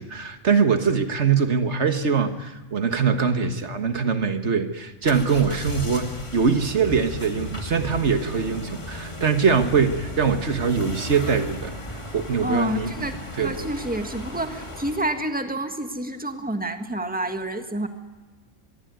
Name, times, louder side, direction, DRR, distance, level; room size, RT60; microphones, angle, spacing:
voice 1, 0.0-12.9 13.4-13.7, right 6 dB, 70° right, 8 dB, 1.8 m, -23 dB
sound 1, 5.0-15.2, left 1 dB, 25° left, 2.3 m, -36 dB
voice 2, 12.4-17.9, right 1 dB, 5° right, 7 dB, 1.7 m, -28 dB
24.5 x 22.5 x 9.4 m, 1.2 s
omnidirectional pair, 1.2 m